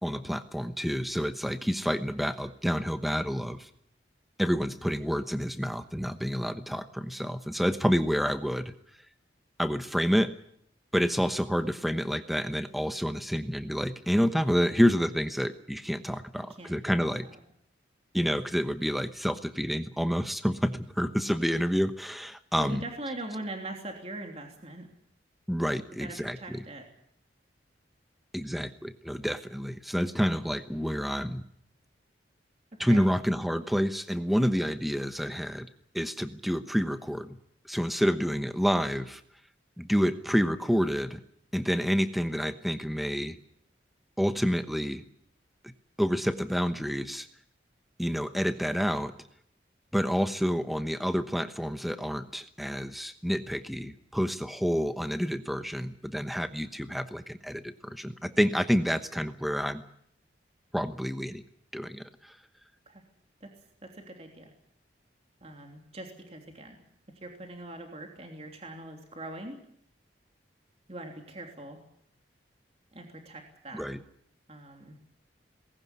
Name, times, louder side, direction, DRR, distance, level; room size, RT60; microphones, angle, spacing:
voice 1, 0.0-3.7 4.4-8.7 9.6-10.3 10.9-17.3 18.1-22.8 25.5-26.6 28.3-31.4 32.8-35.7 35.9-37.4 37.7-39.2 39.8-41.2 41.5-43.4 44.2-45.0 46.0-47.3 48.0-49.1 49.9-59.8 60.7-61.4 61.7-62.0 73.7-74.0, equal, ahead, 10 dB, 1.0 m, -28 dB
voice 2, 16.4-17.4 22.6-24.9 26.0-26.9 32.7-33.1 62.9-63.0 63.4-63.5 63.8-64.5 65.4-66.8 67.2-69.6 70.9-71.8 72.9-73.8 74.5-75.0, right 1 dB, 35° right, 3 dB, 3.2 m, -42 dB
20.0 x 17.0 x 9.6 m, 0.70 s
head